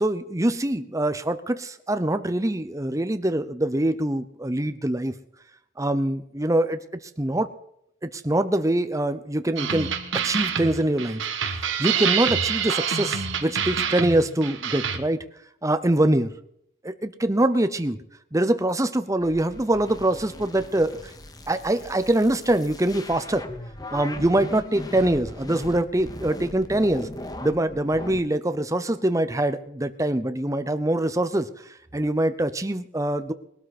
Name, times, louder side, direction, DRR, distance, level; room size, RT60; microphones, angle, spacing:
voice 1, 0.0-5.1 5.8-6.8 7.2-7.5 8.0-11.2 11.8-15.2 15.6-16.3 16.8-18.0 18.3-21.1 21.5-23.4 23.9-27.1 27.4-31.5 31.9-33.3, right 1 dB, 15° right, 11 dB, 0.7 m, -24 dB
sound 1, 9.6-15.0, right 7 dB, 65° right, 1.4 m, -27 dB
sound 2, 19.2-28.2, left 1 dB, 20° left, 1.0 m, -39 dB
21.5 x 12.5 x 4.3 m, 0.75 s
head